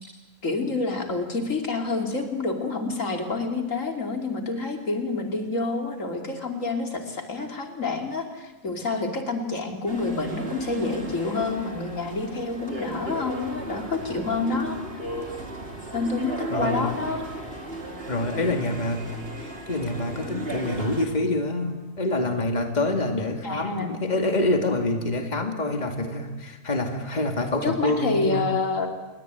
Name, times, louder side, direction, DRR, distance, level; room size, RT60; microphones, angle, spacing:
voice 1, 0.4-14.8 15.9-17.2 23.4-23.9 27.6-28.9, left 3 dB, 70° left, 4 dB, 3.3 m, -28 dB
sound 1, 9.9-21.1, right 1 dB, 45° right, 3.8 m, -35 dB
voice 2, 16.5-17.0 18.1-28.4, left 2 dB, 30° left, 4 dB, 2.5 m, -26 dB
27.5 x 22.5 x 9.2 m, 1.1 s
omnidirectional pair, 1.4 m